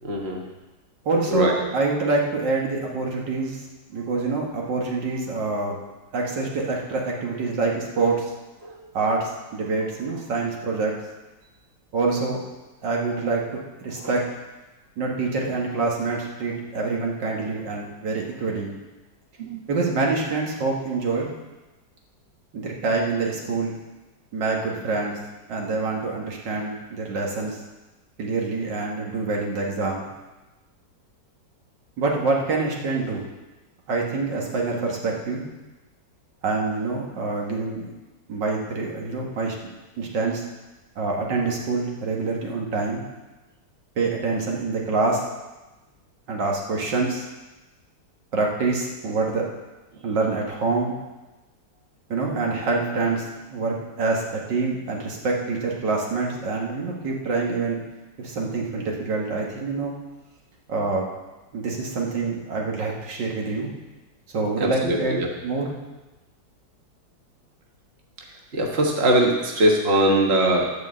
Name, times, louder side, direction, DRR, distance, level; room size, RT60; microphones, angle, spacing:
voice 1, 0.0-0.4 1.3-1.5 8.6-8.7 19.4-19.6 64.6-65.3 68.5-70.7, right 1 dB, 40° right, 0 dB, 1.6 m, -21 dB
voice 2, 1.1-3.6 3.9-5.8 6.1-8.3 8.9-10.9 11.9-12.4 12.8-13.4 13.8-14.2 15.0-18.7 19.7-21.3 22.5-23.8 24.3-25.2 25.5-27.6 28.2-30.1 32.0-33.2 33.9-35.5 36.4-37.9 38.3-39.5 40.0-40.4 41.0-43.0 44.0-45.2 46.3-47.2 48.3-49.4 50.0-50.9 52.1-57.8 58.2-59.9 60.7-61.1 61.5-63.7 64.3-65.7, right 3 dB, 85° right, -1 dB, 2.2 m, -26 dB
12.0 x 4.7 x 7.6 m, 1.1 s
omnidirectional pair, 1.9 m